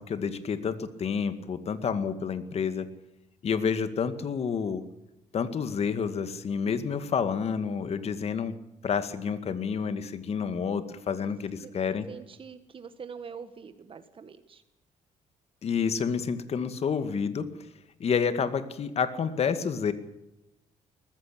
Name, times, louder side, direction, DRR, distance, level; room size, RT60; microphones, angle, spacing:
voice 1, 0.0-2.9 3.4-4.8 5.3-8.5 8.8-12.1 15.6-17.5 18.0-19.9, left 6 dB, 50° left, 10 dB, 2.1 m, -29 dB
voice 2, 12.1-14.6, right 6 dB, 40° right, 10 dB, 1.5 m, -44 dB
20.0 x 15.0 x 8.5 m, 0.94 s
cardioid pair, 105°, 14 cm